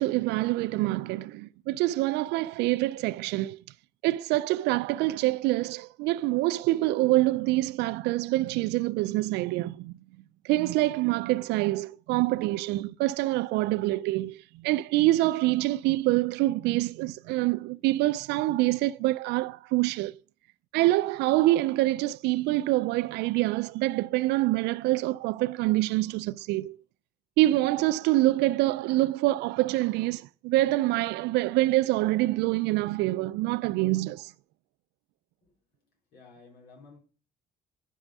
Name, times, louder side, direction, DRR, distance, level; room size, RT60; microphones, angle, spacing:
voice 1, 0.0-3.6 4.0-10.0 10.4-20.2 20.7-26.8 27.4-34.3, right 18 dB, 90° right, 0.4 m, -26 dB
voice 2, 36.1-37.0, left 4 dB, 85° left, 4.4 m, -52 dB
9.9 x 5.4 x 6.0 m
cardioid pair, 110°, 17 cm